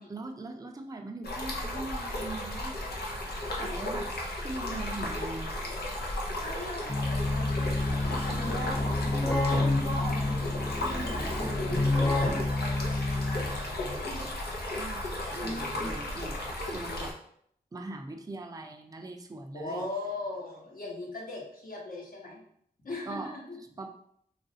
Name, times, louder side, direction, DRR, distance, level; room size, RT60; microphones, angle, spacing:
voice 1, 0.0-2.8 3.5-4.1 4.4-5.7 9.9-10.1 14.7-17.1 17.7-19.8 23.1-23.3 23.8-23.9, right 2 dB, 25° right, 4 dB, 0.4 m, -41 dB
Stream, 1.2-17.1, left 1 dB, 90° left, 0.6 m, -35 dB
voice 2, 6.4-14.3 15.4-15.9 19.5-22.4 22.8-23.6, left 1 dB, 65° left, -2 dB, 1.0 m, -39 dB
Keyboard (musical), 6.9-13.7, left 2 dB, 20° left, 0.8 m, -29 dB
3.1 x 2.4 x 2.7 m, 0.68 s
wide cardioid pair, 65°, 16 cm